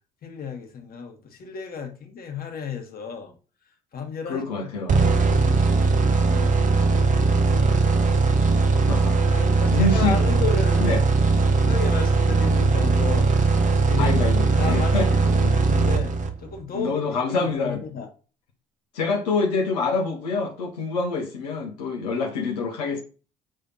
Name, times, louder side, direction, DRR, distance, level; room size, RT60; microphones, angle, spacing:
voice 1, 0.2-3.3 3.9-4.7 5.3-6.5 6.9-8.0 9.3-10.9 11.5-13.3 13.8-14.2 14.6-14.9 15.2-16.1 16.4-17.0 17.3-18.1, left 5 dB, 45° left, 1.7 m, -33 dB
voice 2, 4.3-5.2 8.7-9.2 9.7-10.2 10.8-11.0 14.0-15.6 16.7-17.8 18.9-23.0, left 3 dB, 75° left, 1.1 m, -26 dB
sound 1, 4.9-16.5, right 3 dB, 40° right, 1.1 m, -20 dB
8.9 x 3.4 x 4.1 m
figure-of-eight pair, 50°, 21 cm